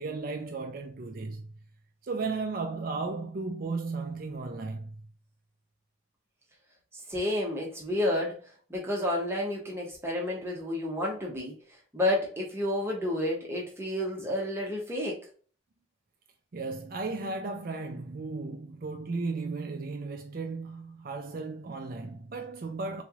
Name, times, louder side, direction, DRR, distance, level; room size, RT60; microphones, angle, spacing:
voice 1, 0.0-1.5 2.0-5.1 16.5-23.0, right 3 dB, 45° right, 0.4 m, -35 dB
voice 2, 7.1-8.4 8.7-11.5 11.9-15.2, left 1 dB, 10° right, 0.9 m, -30 dB
4.0 x 3.1 x 2.3 m
head